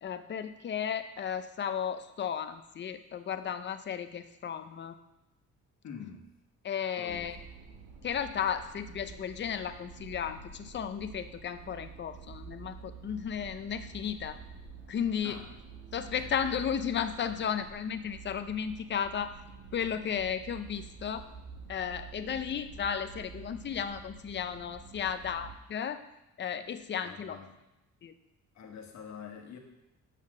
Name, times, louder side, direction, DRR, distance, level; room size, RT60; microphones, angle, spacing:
voice 1, 0.0-5.0 6.6-7.4 8.0-14.4 14.9-15.4 15.9-19.3 19.7-21.3 21.7-26.0 26.4-27.4 28.0-28.1, left 8 dB, 35° left, 10 dB, 0.5 m, -34 dB
voice 2, 5.8-6.3 7.0-7.3 15.2-15.5 16.2-16.3 17.3-17.5 27.0-27.6 28.5-29.6, left 7 dB, 60° left, 3 dB, 1.4 m, -46 dB
sound 1, 7.1-25.6, right 5 dB, 80° right, 1.6 m, -48 dB
6.6 x 5.7 x 6.4 m, 0.91 s
cardioid pair, 145°, 32 cm